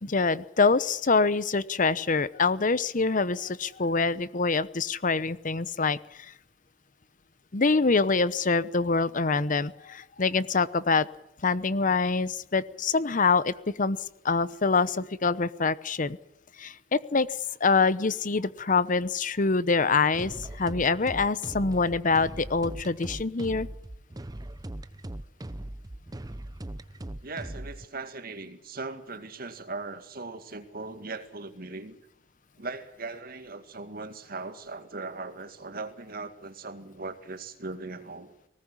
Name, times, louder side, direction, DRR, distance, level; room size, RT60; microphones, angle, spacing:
voice 1, 0.0-6.3 7.5-11.1 11.4-14.0 14.2-16.2 16.6-17.3 17.6-23.7, left 4 dB, 45° left, 17 dB, 0.9 m, -25 dB
sound 1, 20.1-27.8, right 1 dB, 20° right, 0.8 m, -39 dB
voice 2, 27.2-32.0 32.6-38.4, right 3 dB, 55° right, 8 dB, 2.2 m, -39 dB
19.5 x 18.0 x 9.8 m, 0.82 s
head